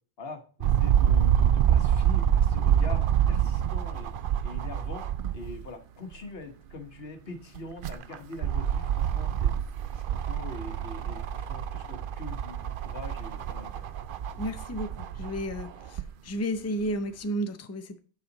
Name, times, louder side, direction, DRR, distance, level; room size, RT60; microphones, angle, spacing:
voice 1, 0.2-4.1 4.4-5.1 5.3-9.5 9.9-13.8, left 3 dB, 70° left, 6 dB, 1.5 m, -43 dB
sound 1, 0.6-5.7 6.1-6.2 7.5-16.1 16.9-17.0, right 9 dB, 65° right, 0.7 m, -26 dB
voice 2, 14.4-18.0, equal, 20° left, 8 dB, 0.6 m, -32 dB
9.9 x 5.7 x 4.0 m, 0.41 s
omnidirectional pair, 1.0 m